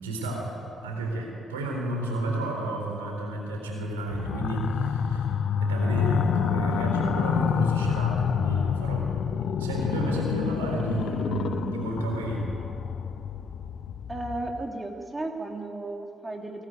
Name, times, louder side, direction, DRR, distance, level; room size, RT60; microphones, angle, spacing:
voice 1, 0.0-9.1 9.6-12.5, right 2 dB, 80° right, 1 dB, 3.9 m, -31 dB
sound 1, 4.1-14.6, left 7 dB, 55° left, 0.9 m, -28 dB
voice 2, 14.1-16.7, right 2 dB, 20° right, 2 dB, 3.1 m, -34 dB
23.0 x 18.5 x 9.4 m, 2.7 s
figure-of-eight pair, 40°, 0 cm